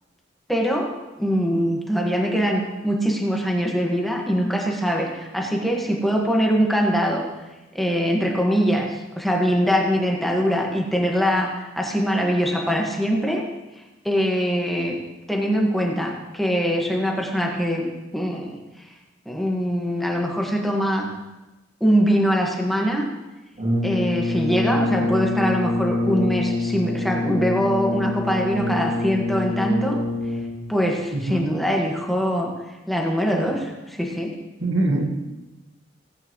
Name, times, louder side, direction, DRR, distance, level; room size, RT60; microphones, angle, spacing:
voice 1, 0.5-0.9 1.2-7.2 7.7-13.4 14.0-15.0 15.3-17.9 18.1-18.6 19.2-21.1 21.8-23.0 23.8-30.0 30.7-32.5 32.9-34.3, equal, ahead, -1 dB, 1.5 m, -22 dB
Brass instrument, 23.6-30.7, left 2 dB, 45° right, 3.1 m, -25 dB
voice 2, 31.1-31.4 34.6-35.1, right 2 dB, 70° right, 2 dB, 1.6 m, -23 dB
17.5 x 8.9 x 3.1 m, 1.1 s
head